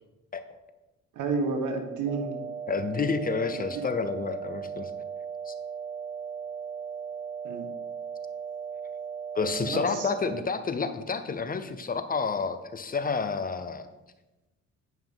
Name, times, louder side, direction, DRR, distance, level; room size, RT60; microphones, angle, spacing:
voice 1, 1.1-2.4 3.5-3.9 7.4-7.7 9.6-10.1, right 4 dB, 90° right, 5 dB, 1.3 m, -31 dB
sound 1, 2.1-10.4, right 6 dB, 30° right, 0.6 m, -37 dB
voice 2, 2.7-4.9 5.5-5.6 9.3-13.9, left 5 dB, 30° left, 10 dB, 0.6 m, -29 dB
9.1 x 5.7 x 3.6 m, 1.0 s
cardioid pair, 90°, 30 cm